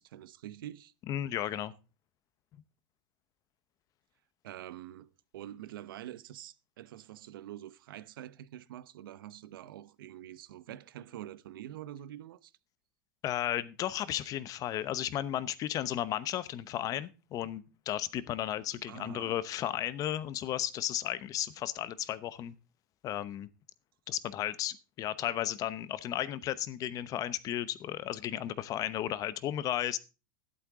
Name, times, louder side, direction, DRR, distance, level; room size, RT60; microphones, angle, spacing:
voice 1, 0.0-0.9 4.4-12.5 18.9-19.3, right 12 dB, 80° right, 0.9 m, -46 dB
voice 2, 1.1-1.7 13.2-22.5 23.0-23.5 24.1-30.0, left 12 dB, 30° left, 0.8 m, -34 dB
12.5 x 11.5 x 3.7 m
supercardioid pair, 145°, 11 cm